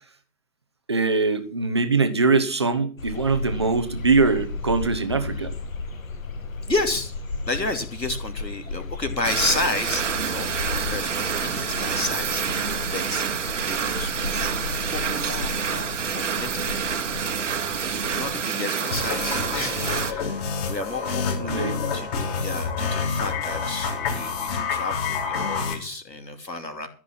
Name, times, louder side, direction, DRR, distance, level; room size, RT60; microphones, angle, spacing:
voice 1, 0.9-5.5 21.4-21.8, right 4 dB, 15° right, 9 dB, 0.6 m, -22 dB
sound 1, 3.0-18.4, left 3 dB, 55° left, 1.5 m, -34 dB
voice 2, 6.7-7.1 7.5-13.2 13.6-14.1 14.9-16.7 18.0-21.7 21.9-22.1 22.4-26.9, left 2 dB, 80° left, 6 dB, 3.0 m, -31 dB
sound 2, 9.2-20.1, right 6 dB, 45° right, 1.2 m, -28 dB
sound 3, 18.9-25.7, left 5 dB, 25° left, 2.6 m, -28 dB
14.0 x 6.0 x 7.6 m, 0.40 s
figure-of-eight pair, 135°, 50 cm